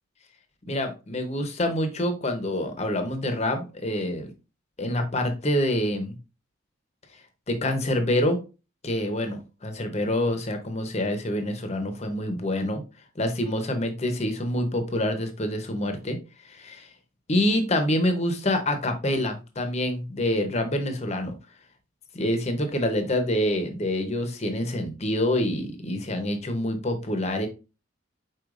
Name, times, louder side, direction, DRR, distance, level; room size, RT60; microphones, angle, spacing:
voice 1, 0.7-4.3 4.8-6.2 7.5-8.4 8.8-12.8 13.2-16.2 16.5-16.9 17.3-21.3 22.1-27.5, left 1 dB, 30° left, 6 dB, 0.8 m, -26 dB
4.7 x 4.4 x 2.4 m, 0.30 s
head